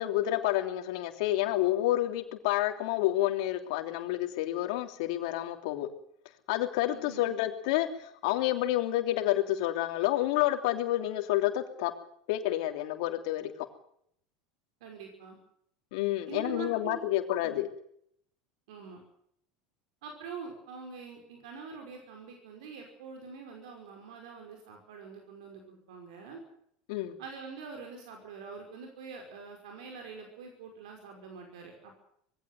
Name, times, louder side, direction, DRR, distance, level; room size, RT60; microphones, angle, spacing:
voice 1, 0.0-5.9 6.5-11.9 12.3-13.5 15.9-17.7 26.9-27.2, left 14 dB, 75° left, 6 dB, 3.1 m, -29 dB
voice 2, 6.9-7.3 14.8-15.4 16.3-17.0 17.4-17.6 18.7-19.0 20.0-26.4 27.2-32.0, right 5 dB, 80° right, 3 dB, 5.6 m, -45 dB
20.5 x 16.5 x 9.3 m, 0.70 s
supercardioid pair, 115°, 3 cm